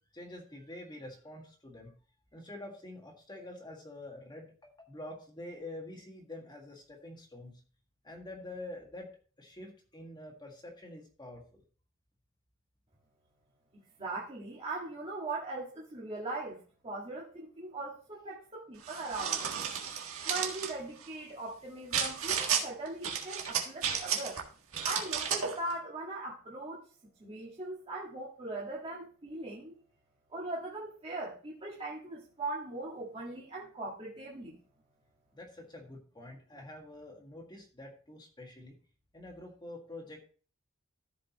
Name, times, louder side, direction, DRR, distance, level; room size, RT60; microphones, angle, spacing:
voice 1, 0.1-1.9 2.3-7.6 8.0-9.1 9.4-11.4 35.3-38.8 39.1-40.3, left 1 dB, 20° left, 0 dB, 1.7 m, -47 dB
voice 2, 14.0-16.6 16.8-19.5 20.3-24.4 24.8-26.9 27.2-29.8 30.3-34.6, right 2 dB, 30° right, -5 dB, 1.7 m, -40 dB
sound 1, 18.8-20.7 21.9-22.6 23.0-24.4 24.7-25.6, right 7 dB, 75° right, 1.6 m, -33 dB
14.5 x 5.1 x 3.0 m, 0.40 s
head